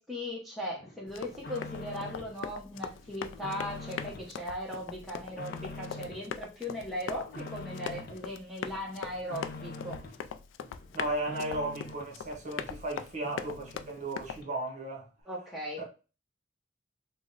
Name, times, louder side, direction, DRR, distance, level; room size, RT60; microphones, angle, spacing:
voice 1, 0.0-10.0 15.3-15.8, left 1 dB, ahead, 0.8 m, -38 dB
sound 1, 0.8-2.4 2.7-4.3 4.7-6.3 6.7-8.2 8.6-10.2 10.6-12.2 12.6-12.7 13.0-13.1 13.2-14.1 14.4-14.5, left 2 dB, 55° left, 0.6 m, -45 dB
Run, 1.1-14.4, left 7 dB, 90° left, 0.3 m, -41 dB
voice 2, 10.9-15.1 15.8-15.9, right 2 dB, 40° right, 0.8 m, -35 dB
3.4 x 2.1 x 3.8 m
head